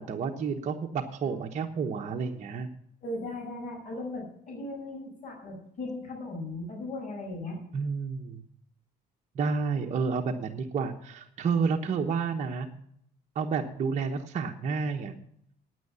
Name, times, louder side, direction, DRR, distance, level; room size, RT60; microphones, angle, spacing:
voice 1, 0.0-2.7 7.7-8.4 9.3-12.7 13.3-15.2, right 5 dB, 45° right, 2 dB, 1.1 m, -30 dB
voice 2, 3.0-7.6, left 2 dB, 50° left, -1 dB, 6.1 m, -37 dB
9.4 x 9.2 x 6.9 m, 0.69 s
cardioid pair, 110°, 17 cm